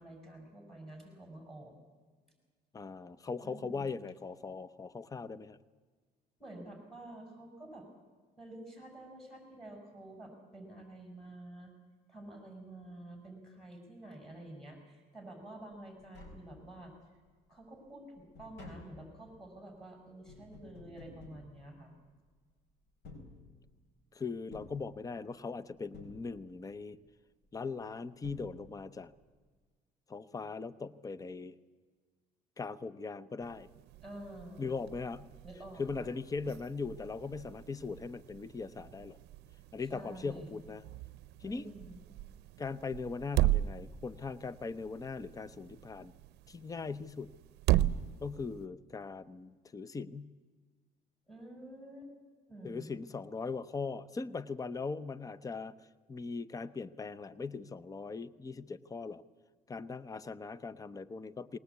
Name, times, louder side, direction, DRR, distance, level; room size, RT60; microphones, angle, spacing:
voice 1, 0.0-1.8 3.4-3.9 6.4-7.9 8.4-11.7 12.1-16.9 17.5-21.9 34.0-34.8 35.4-36.1 39.9-40.6 41.4-42.0 51.3-52.1 52.5-53.0, right 1 dB, ahead, 3 dB, 5.9 m, -49 dB
voice 2, 2.7-5.6 24.1-27.0 27.5-29.1 30.1-31.6 32.6-33.7 34.6-35.3 35.8-39.2 39.7-40.8 41.4-41.7 42.6-46.1 46.5-47.3 48.2-50.3 52.6-55.8 56.1-59.2 59.7-61.6, left 4 dB, 20° left, 16 dB, 0.7 m, -40 dB
Tap, 15.7-15.8 16.0-17.1 17.5-22.3 22.9-24.0 24.5-25.5 25.9-26.8 27.8-27.9 28.2-29.1 29.3-29.4, left 3 dB, 85° left, 4.4 m, -54 dB
sound 1, 33.4-48.7, right 15 dB, 85° right, 0.6 m, -37 dB
20.0 x 19.5 x 8.2 m, 1.5 s
cardioid pair, 110°, 17 cm